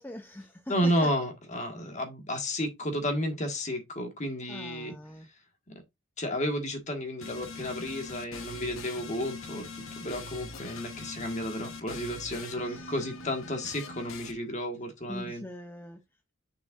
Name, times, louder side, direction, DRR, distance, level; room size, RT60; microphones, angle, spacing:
voice 1, 0.0-1.1 4.5-5.3 12.6-12.9 15.1-16.0, left 1 dB, 10° left, 0.6 m, -42 dB
voice 2, 0.7-4.9 6.2-9.7 10.0-15.5, equal, 35° left, 1.6 m, -32 dB
sound 1, 7.2-14.3, left 4 dB, 75° left, 1.1 m, -42 dB
6.8 x 6.3 x 2.5 m
head